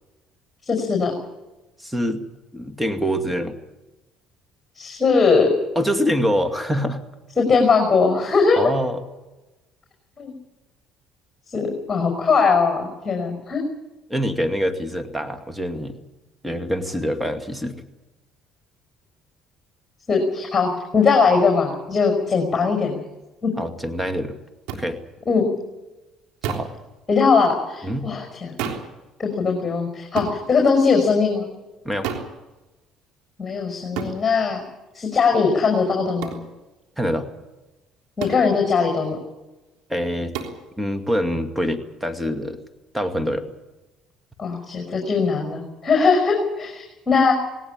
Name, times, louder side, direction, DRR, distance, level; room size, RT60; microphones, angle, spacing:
voice 1, 0.6-1.1 4.7-5.5 7.4-8.6 10.2-10.3 11.5-13.6 20.1-23.0 23.4-23.5 25.3-25.5 27.1-28.5 29.2-31.5 33.4-34.6 34.9-36.4 38.2-39.2 44.4-47.3, left 5 dB, 30° left, 2 dB, 5.7 m, -20 dB
voice 2, 1.8-2.2 2.5-3.6 5.8-7.0 8.6-9.0 14.1-16.0 16.4-17.8 23.6-24.4 24.7-25.0 26.4-26.7 27.8-28.1 31.8-32.1 37.0-37.3 39.9-40.3 40.8-42.6 42.9-43.4, equal, 5° right, 7 dB, 2.3 m, -25 dB
sound 1, 24.7-24.8 26.4-26.8 28.6-28.9 30.2-30.4 32.0-32.3 34.0-34.2 36.2-36.4 38.2-38.5 40.3-40.6, right 7 dB, 75° right, 3.5 m, -29 dB
19.0 x 18.5 x 9.0 m, 1.1 s
hypercardioid pair, 65°, 0 cm